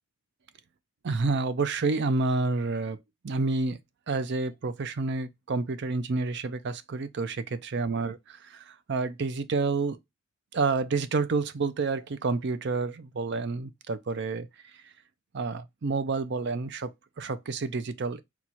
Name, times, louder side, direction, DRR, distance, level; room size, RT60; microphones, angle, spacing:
voice 1, 1.0-3.0 3.2-3.8 4.1-10.0 10.5-14.5 14.8-14.9 15.3-18.2, right 3 dB, 50° right, 0.5 m, -29 dB
4.5 x 2.3 x 4.0 m
head